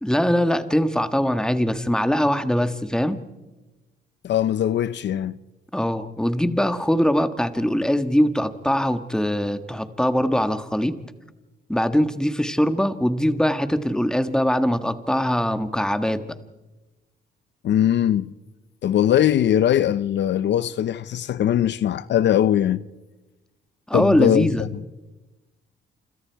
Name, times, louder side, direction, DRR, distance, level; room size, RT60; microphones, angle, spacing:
voice 1, 0.0-3.2 5.7-11.0 11.7-16.2 23.9-24.6, equal, 5° left, 1.6 m, -22 dB
voice 2, 4.2-5.4 17.6-18.3 18.8-22.8 23.9-24.5, left 10 dB, 65° left, 0.7 m, -20 dB
28.5 x 26.5 x 4.7 m
cardioid pair, 90°, 20 cm